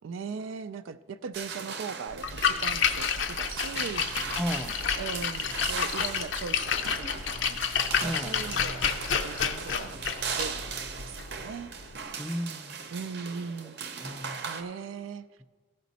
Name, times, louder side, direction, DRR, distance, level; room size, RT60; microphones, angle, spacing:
voice 1, 0.0-4.0 5.0-7.6 8.0-10.0 10.4-11.7 12.9-13.8 14.4-15.4, right 5 dB, 75° right, 13 dB, 0.3 m, -39 dB
sound 1, 1.3-14.6, right 6 dB, 55° right, 0.7 m, -39 dB
Splash splatter, 2.1-12.0, left 7 dB, 60° left, 0.5 m, -30 dB
voice 2, 4.4-4.7 8.0-8.4 12.2-12.8 14.0-14.4, equal, ahead, 5 dB, 0.4 m, -34 dB
15.0 x 5.1 x 4.1 m, 1.4 s
head